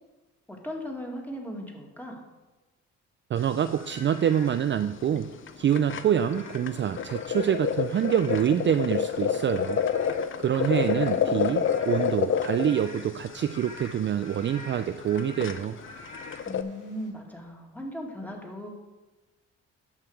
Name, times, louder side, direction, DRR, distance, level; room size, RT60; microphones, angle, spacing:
voice 1, 0.5-2.2 10.5-11.4 16.5-18.7, equal, 5° left, 0 dB, 2.2 m, -38 dB
voice 2, 3.3-5.3 5.6-9.8 10.4-15.8, right 9 dB, 40° right, 9 dB, 0.4 m, -26 dB
sound 1, 3.4-3.8 4.1-4.2 4.5-4.7 5.2-5.3 5.5-16.6, left 7 dB, 40° left, 0.6 m, -29 dB
Frog / Rain, 3.6-17.1, left 1 dB, 80° left, 3.0 m, -48 dB
13.0 x 5.7 x 4.7 m, 1.1 s
cardioid pair, 90°, 30 cm